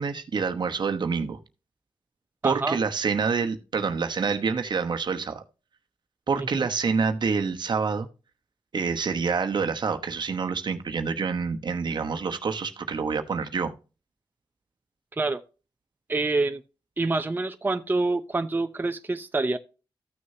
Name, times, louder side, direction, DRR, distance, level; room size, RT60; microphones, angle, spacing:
voice 1, 0.0-1.4 2.4-5.4 6.3-8.1 8.7-13.7, right 5 dB, 60° right, 1.0 m, -27 dB
voice 2, 2.4-2.8 6.4-6.5 15.2-15.4 16.1-16.6 17.0-19.6, right 3 dB, 25° right, 0.6 m, -26 dB
14.0 x 6.4 x 2.7 m
cardioid pair, 65°, 9 cm